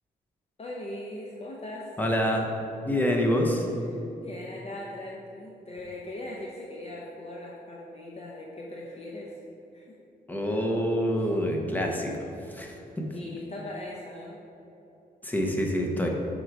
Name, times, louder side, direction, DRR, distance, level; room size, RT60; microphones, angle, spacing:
voice 1, 0.6-1.9 3.9-9.4 9.7-10.0 11.1-11.4 12.3-12.6 13.1-14.4, left 1 dB, 40° left, -2 dB, 0.6 m, -40 dB
voice 2, 2.0-2.5 2.9-3.7 10.3-12.1 12.5-13.1 15.2-16.1, equal, 10° left, 0 dB, 0.8 m, -26 dB
6.1 x 3.8 x 4.5 m, 2.9 s
wide cardioid pair, 105°, 16 cm